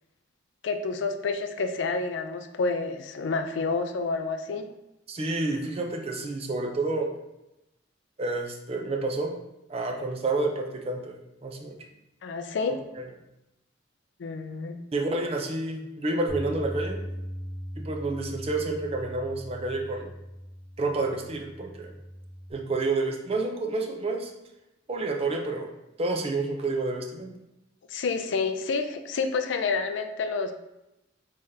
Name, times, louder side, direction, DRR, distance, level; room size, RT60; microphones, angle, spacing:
voice 1, 0.6-4.7 12.2-12.8 14.2-14.8 27.9-30.5, left 4 dB, 70° left, 7 dB, 0.4 m, -29 dB
voice 2, 5.1-7.1 8.2-9.4 9.7-11.8 13.0-13.1 14.9-17.0 17.8-20.1 20.8-21.9 22.5-24.3 24.9-25.7 26.0-27.3, right 2 dB, 30° right, 3 dB, 0.5 m, -29 dB
Bass guitar, 16.3-22.5, equal, 15° right, 1.0 m, -39 dB
3.6 x 3.2 x 2.7 m, 0.93 s
head